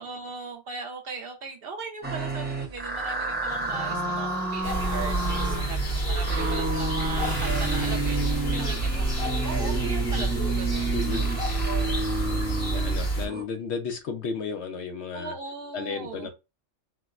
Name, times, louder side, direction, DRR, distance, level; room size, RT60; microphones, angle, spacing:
voice 1, 0.0-11.2 15.1-16.3, right 4 dB, 65° right, 0.6 m, -39 dB
sound 1, 2.0-13.4, right 3 dB, 15° right, 0.4 m, -31 dB
sound 2, 3.5-5.3 7.1-9.1, left 2 dB, 85° left, 1.4 m, -40 dB
sound 3, 4.6-13.3, right 2 dB, 50° left, 1.7 m, -28 dB
voice 2, 10.9-11.3 12.2-15.3 15.7-16.3, left 5 dB, 65° left, 0.9 m, -34 dB
4.3 x 2.0 x 2.4 m
omnidirectional pair, 1.3 m